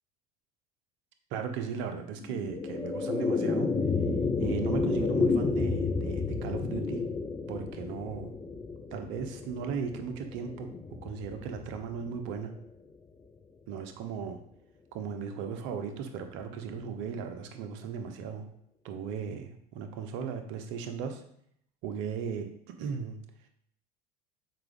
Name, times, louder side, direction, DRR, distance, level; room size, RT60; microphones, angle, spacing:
voice 1, 1.3-3.7 4.4-7.0 7.5-8.3 8.9-10.7 11.0-12.5 13.7-14.4 14.9-18.5 18.8-21.2 21.8-22.5 22.8-23.2, right 6 dB, 70° right, 6 dB, 0.9 m, -36 dB
sound 1, 2.2-12.7, left 4 dB, 20° left, 0.6 m, -31 dB
5.8 x 4.6 x 3.6 m, 0.69 s
hypercardioid pair, 80°, 20 cm